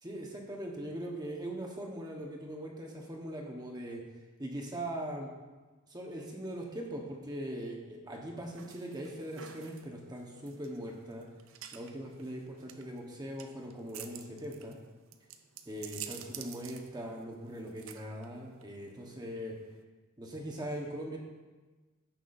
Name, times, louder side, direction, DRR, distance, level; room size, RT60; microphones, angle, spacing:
voice 1, 0.0-4.0 4.4-5.3 5.9-11.3 11.7-14.8 15.7-19.6 20.2-21.2, right 1 dB, 20° right, 0 dB, 1.2 m, -40 dB
sound 1, 8.5-19.8, right 9 dB, 60° right, 0.5 m, -50 dB
15.0 x 6.0 x 2.6 m, 1.3 s
head